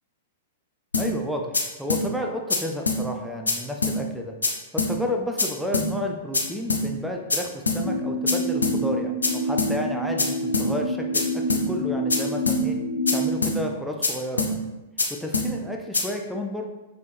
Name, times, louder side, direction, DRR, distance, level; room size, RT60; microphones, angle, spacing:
sound 1, 0.9-1.1 1.5-1.6 1.9-2.0 2.5-2.6 2.9-3.0 3.5-3.6 3.8-4.0 4.4-4.5 4.8-4.9 5.4-5.5 5.7-5.9 6.3-6.4 6.7-6.8 7.3-7.4 7.7-7.8 8.3-8.4 8.6-8.8 9.2-9.3 9.6-9.7 10.2-10.3 10.5-10.7 11.1-11.2 11.5-11.6 12.1-12.2 12.5-12.6 13.1-13.2 13.4-13.6 14.0-14.1 14.4-14.5 15.0-15.1 15.3-15.5 15.9-16.0, left 3 dB, 80° left, 0.5 m, -23 dB
voice 1, 1.0-4.3 4.7-11.3 11.7-12.8 13.1-14.6 15.1-16.7, left 1 dB, ahead, 1 dB, 0.3 m, -31 dB
sound 2, 7.8-13.3, equal, 40° left, 1.2 m, -27 dB
3.2 x 3.1 x 2.5 m, 1.1 s
figure-of-eight pair, 105°, 0 cm